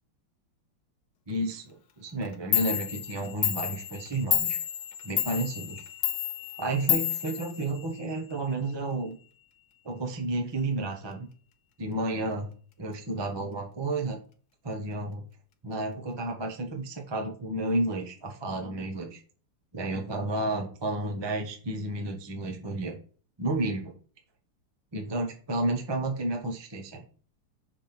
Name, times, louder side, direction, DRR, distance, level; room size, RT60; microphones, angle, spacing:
voice 1, 1.3-4.6 5.0-5.8 6.6-9.2 9.8-11.3 11.8-12.5 12.8-14.2 14.6-15.3 15.6-19.2 19.7-23.0 23.4-23.9 24.9-27.0, right 2 dB, 30° right, 1 dB, 0.5 m, -31 dB
Clock, 2.2-2.3 2.5-8.2, left 11 dB, 65° left, 1.1 m, -30 dB
6.4 x 3.6 x 6.0 m, 0.42 s
omnidirectional pair, 2.4 m